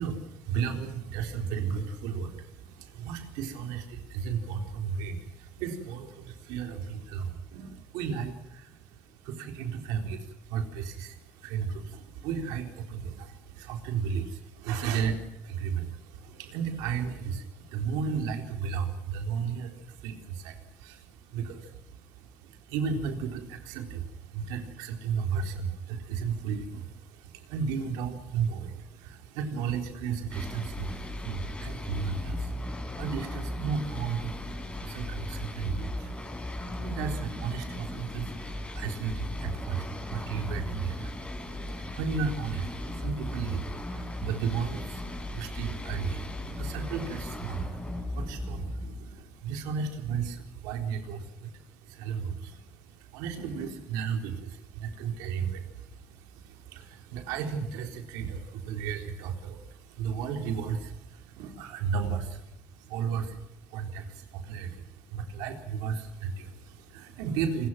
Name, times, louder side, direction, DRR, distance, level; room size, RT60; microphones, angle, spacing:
voice 1, 0.0-67.7, right 6 dB, 80° right, 5 dB, 4.0 m, -34 dB
sound 1, 30.3-49.3, left 1 dB, 20° left, 6.2 m, -37 dB
29.5 x 22.0 x 6.1 m, 0.85 s
hypercardioid pair, 70°, 6 cm